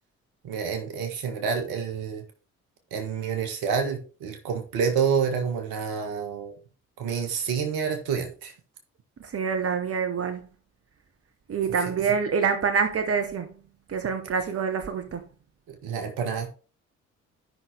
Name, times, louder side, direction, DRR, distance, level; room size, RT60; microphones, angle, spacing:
voice 1, 0.4-2.2 2.9-6.6 7.0-8.5 11.9-12.0 15.7-16.5, right 6 dB, 65° right, 1.7 m, -28 dB
voice 2, 9.2-10.4 11.5-13.5 13.9-15.2, right 6 dB, 35° right, 1.1 m, -26 dB
12.5 x 5.7 x 3.3 m
figure-of-eight pair, 40°, 40 cm